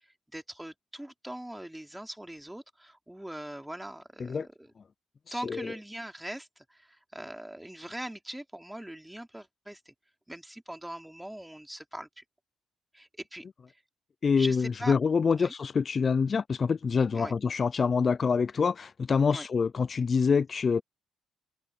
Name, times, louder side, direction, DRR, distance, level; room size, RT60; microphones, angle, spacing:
voice 1, 0.0-4.7 5.3-9.9 10.3-12.2 12.9-13.4 14.4-14.9 15.3-15.5 17.1-17.3 19.3-19.5, right 1 dB, 5° right, 3.3 m, -41 dB
voice 2, 5.3-5.7 14.2-20.8, left 5 dB, 40° left, 0.3 m, -26 dB
cardioid pair, 90°, 0 cm